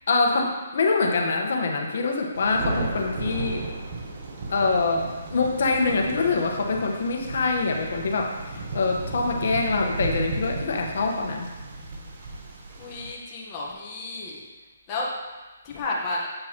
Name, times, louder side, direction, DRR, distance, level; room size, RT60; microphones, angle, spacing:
voice 1, 0.1-3.7 4.5-11.5, left 3 dB, 60° left, 2 dB, 1.1 m, -25 dB
Thunder, 2.3-13.1, right 3 dB, 40° right, 1.0 m, -34 dB
voice 2, 12.8-14.4 14.9-15.0 15.6-16.3, left 2 dB, 25° left, -4 dB, 1.1 m, -32 dB
7.8 x 6.2 x 2.9 m, 1.2 s
hypercardioid pair, 165°, 0 cm